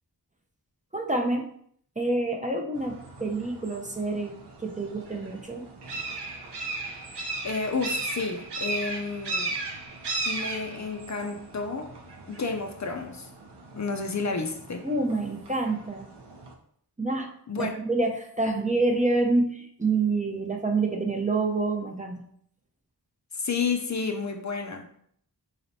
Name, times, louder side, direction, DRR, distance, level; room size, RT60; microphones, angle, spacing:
voice 1, 0.9-1.4 2.0-5.7 14.8-16.1 17.0-17.3 17.6-22.2, right 2 dB, 20° right, 0.5 m, -27 dB
sound 1, 2.8-16.5, right 3 dB, 90° right, 0.7 m, -37 dB
voice 2, 7.4-9.5 10.3-11.9 12.3-13.3 13.7-14.8 17.5-17.8 23.3-24.9, left 4 dB, 45° left, 0.4 m, -31 dB
4.0 x 3.2 x 2.6 m
wide cardioid pair, 65°, 40 cm